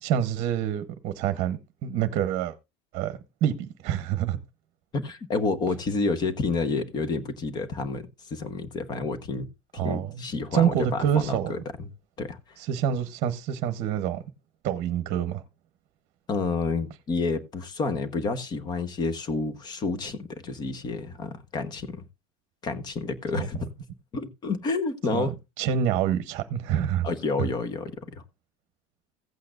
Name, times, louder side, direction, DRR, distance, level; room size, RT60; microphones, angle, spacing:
voice 1, 0.0-2.6 2.9-4.4 9.7-10.2 10.5-11.5 12.6-14.2 14.6-15.4 23.4-23.5 25.1-25.3 25.6-27.1 27.4-27.5, right 9 dB, 40° right, 1.0 m, -27 dB
voice 2, 4.9-9.5 9.8-11.6 12.2-12.4 16.3-22.0 22.6-23.7 24.1-25.3 27.0-28.2, left 4 dB, 25° left, 1.0 m, -29 dB
16.0 x 8.4 x 2.5 m
cardioid pair, 180°, 18 cm